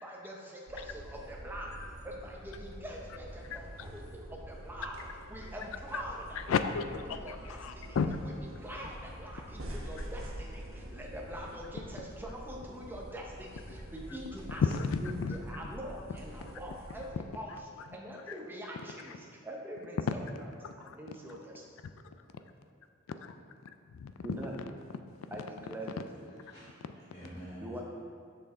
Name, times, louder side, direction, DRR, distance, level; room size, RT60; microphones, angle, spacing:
voice 1, 0.0-1.7 2.0-4.9 5.3-6.5 7.1-8.0 8.6-14.6 15.0-17.1 17.3-17.6 17.9-20.2 20.8-21.6 24.2-24.6 25.3-26.4 27.6-27.8, equal, 10° right, -2 dB, 0.8 m, -44 dB
sound 1, 0.7-17.1, right 1 dB, 90° right, 1.0 m, -46 dB
voice 2, 6.5-8.2 14.5-15.4 18.3-18.4 20.6-21.0 23.2-23.3 23.9-24.4, left 5 dB, 85° left, 9 dB, 0.4 m, -33 dB
voice 3, 25.8-27.8, equal, 35° left, -10 dB, 1.4 m, -49 dB
6.6 x 6.0 x 3.7 m, 2.2 s
head